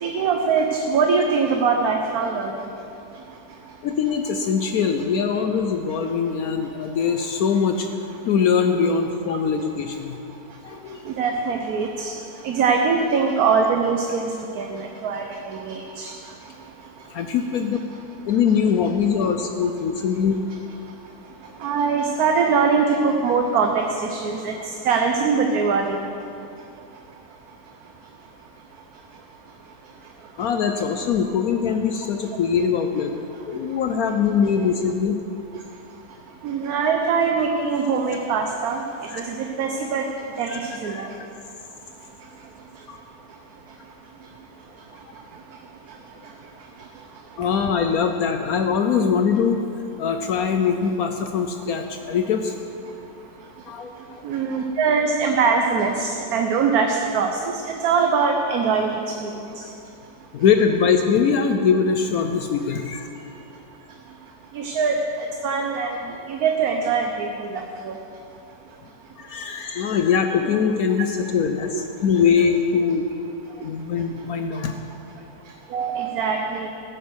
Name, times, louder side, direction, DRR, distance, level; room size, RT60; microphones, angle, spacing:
voice 1, 0.0-2.5 11.1-12.1 12.4-14.3 14.6-16.1 21.6-24.5 24.8-26.0 36.4-38.8 39.2-40.0 40.4-41.1 54.2-58.9 59.2-59.3 64.5-65.0 65.4-66.0 66.3-67.9 69.4-69.5 75.7-76.7, right 5 dB, 65° right, 3 dB, 1.3 m, -22 dB
voice 2, 3.8-7.9 8.3-10.2 10.6-11.0 17.1-17.9 18.3-20.4 30.4-33.2 33.5-35.2 39.1-39.3 40.5-40.6 40.8-41.1 42.9-43.0 47.4-49.6 50.0-52.5 53.6-53.9 60.3-63.1 69.2-73.1 73.5-74.8, left 6 dB, 70° left, 6 dB, 1.1 m, -22 dB
14.5 x 9.1 x 6.3 m, 2.6 s
omnidirectional pair, 1.7 m